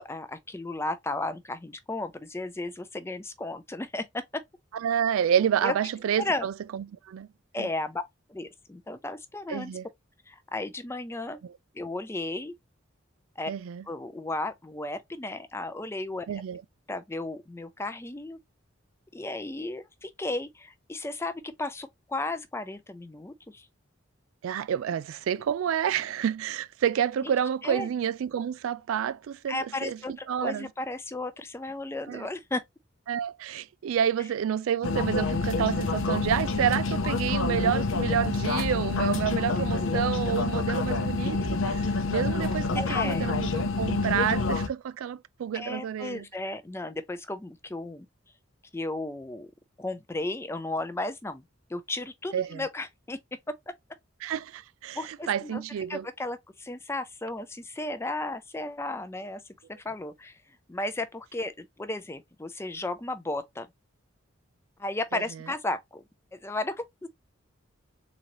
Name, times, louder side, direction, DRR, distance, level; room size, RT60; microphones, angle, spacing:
voice 1, 0.0-4.4 5.6-5.7 6.2-6.5 7.5-8.0 8.3-9.7 10.3-11.4 11.7-12.5 13.4-13.5 13.9-16.4 16.9-18.4 19.1-23.7 27.2-27.3 27.6-27.9 29.5-30.1 30.4-32.6 42.8-43.3 45.5-48.1 48.7-49.5 49.8-51.4 51.7-53.2 53.5-53.7 55.0-55.6 55.9-59.4 59.7-60.4 60.7-63.7 64.8-66.0 66.3-67.1, left 2 dB, 10° left, 0.4 m, -34 dB
voice 2, 4.7-7.3 7.6-7.7 9.5-9.8 11.4-11.5 13.5-13.8 16.3-16.6 24.4-30.0 30.3-30.7 32.1-32.3 33.1-46.3 52.3-52.7 54.2-56.1 65.1-65.2, right 9 dB, 80° right, 0.3 m, -29 dB
sound 1, 34.8-44.7, left 3 dB, 75° left, 0.6 m, -27 dB
3.9 x 2.7 x 3.0 m
head